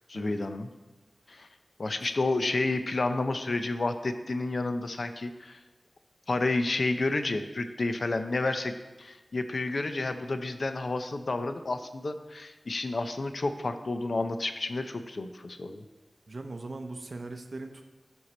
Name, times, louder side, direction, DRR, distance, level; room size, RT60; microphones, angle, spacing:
voice 1, 0.1-0.7 1.3-1.5 1.8-5.6 6.3-8.7 9.0-15.8, left 2 dB, 70° left, 8 dB, 0.6 m, -30 dB
voice 2, 16.3-18.0, right 2 dB, 65° right, 6 dB, 0.6 m, -40 dB
11.5 x 4.6 x 4.2 m, 1.2 s
wide cardioid pair, 50°, 0 cm